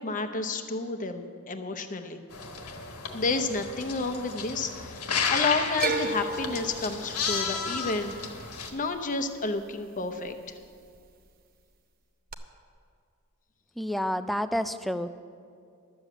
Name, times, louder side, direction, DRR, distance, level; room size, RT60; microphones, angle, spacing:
voice 1, 0.0-2.2 3.1-8.1 8.4-10.3, left 3 dB, 35° left, 7 dB, 0.8 m, -31 dB
sound 1, 2.3-8.7, left 5 dB, 80° left, 1.3 m, -33 dB
sound 2, 5.8-10.0 10.3-11.0 12.3-12.4, right 3 dB, 45° right, 0.7 m, -34 dB
voice 2, 13.8-15.1, equal, ahead, 11 dB, 0.3 m, -29 dB
12.0 x 7.5 x 7.9 m, 2.3 s
head